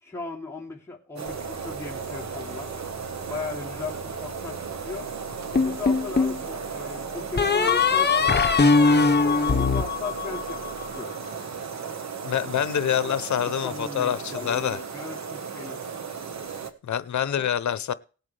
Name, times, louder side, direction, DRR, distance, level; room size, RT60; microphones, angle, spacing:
voice 1, 0.0-2.7 3.3-5.1 5.5-8.5 9.3-11.2 13.0-15.8 17.2-17.5, left 3 dB, 10° left, 2.8 m, -37 dB
Bus, 1.2-10.9, left 4 dB, 5° right, 4.1 m, -47 dB
sound 1, 1.2-16.7, right 6 dB, 65° right, 1.4 m, -35 dB
sound 2, 5.5-6.4 7.4-10.7, left 4 dB, 35° left, 1.2 m, -21 dB
voice 2, 12.2-14.8 16.8-17.9, left 9 dB, 75° left, 0.8 m, -26 dB
18.5 x 8.2 x 3.4 m
wide cardioid pair, 85°, 29 cm